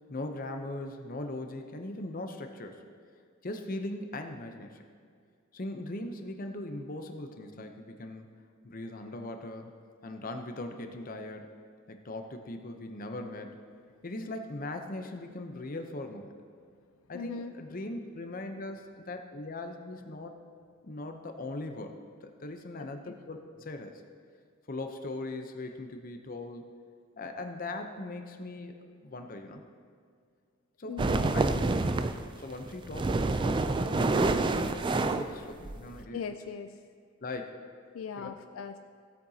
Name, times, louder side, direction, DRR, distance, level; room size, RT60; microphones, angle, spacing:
voice 1, 0.1-2.8 3.4-4.8 5.5-8.3 8.6-9.7 10.0-11.5 11.9-13.6 14.0-16.3 17.1-20.3 20.8-23.9 24.7-26.7 27.2-29.6 30.8-31.5 32.4-36.2 37.2-37.6 38.1-38.3, left 2 dB, 40° left, 5 dB, 0.7 m, -40 dB
voice 2, 17.1-17.5 23.1-23.2 30.9-31.4 36.1-36.7 37.9-38.8, left 6 dB, 75° left, 8 dB, 0.4 m, -39 dB
sound 1, 31.0-32.2 32.7-36.0, right 3 dB, 25° right, 0.3 m, -27 dB
16.0 x 8.7 x 2.8 m, 2.1 s
head